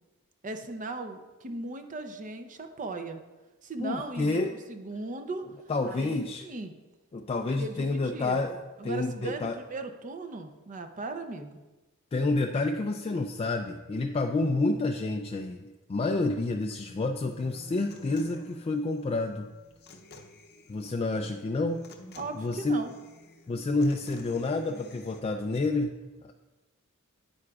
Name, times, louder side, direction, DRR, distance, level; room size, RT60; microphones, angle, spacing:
voice 1, 0.4-3.2 3.6-5.5 5.9-6.7 7.5-11.6 22.2-22.9, right 2 dB, 35° right, 7 dB, 0.6 m, -38 dB
voice 2, 3.8-4.5 5.7-6.4 7.1-8.6 8.8-9.6 12.1-19.5 20.7-21.8 22.3-22.9 23.5-26.3, left 2 dB, 25° left, 3 dB, 0.3 m, -29 dB
Human voice / Acoustic guitar, 17.2-25.2, left 2 dB, 50° left, 0.7 m, -50 dB
9.6 x 8.6 x 2.4 m, 1.2 s
head